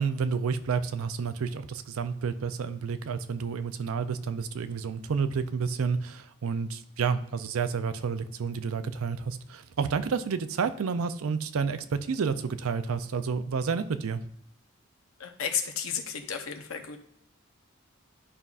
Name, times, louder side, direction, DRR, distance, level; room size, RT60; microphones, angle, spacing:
voice 1, 0.0-14.2, right 5 dB, 85° right, 11 dB, 0.5 m, -30 dB
voice 2, 15.2-17.0, left 8 dB, 80° left, 5 dB, 0.8 m, -33 dB
11.0 x 5.4 x 2.4 m, 0.72 s
head